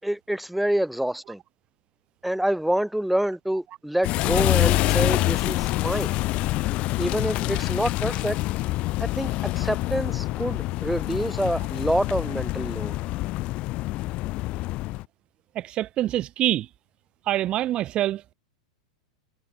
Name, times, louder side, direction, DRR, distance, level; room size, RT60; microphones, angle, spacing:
voice 1, 0.0-1.4 2.2-6.1 7.0-8.4 9.0-13.0, right 1 dB, ahead, 4.1 m, -27 dB
sound 1, 4.0-15.0, left 19 dB, 40° left, 1.5 m, -26 dB
voice 2, 15.5-16.7 17.2-18.3, right 13 dB, 35° right, 1.3 m, -25 dB
figure-of-eight pair, 95°, 3 cm